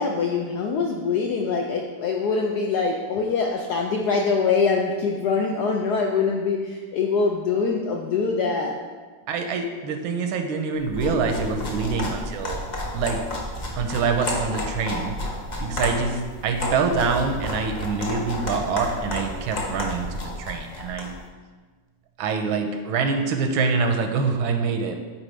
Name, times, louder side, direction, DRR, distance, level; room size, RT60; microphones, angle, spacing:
voice 1, 0.0-8.8, left 4 dB, 75° left, 1 dB, 0.9 m, -24 dB
voice 2, 9.3-12.6 12.9-13.2 13.8-21.2 22.2-25.0, right 5 dB, 85° right, 5 dB, 1.5 m, -25 dB
sound 1, 10.8-21.2, left 1 dB, 45° left, 0.5 m, -31 dB
8.9 x 4.2 x 3.3 m, 1.4 s
omnidirectional pair, 2.2 m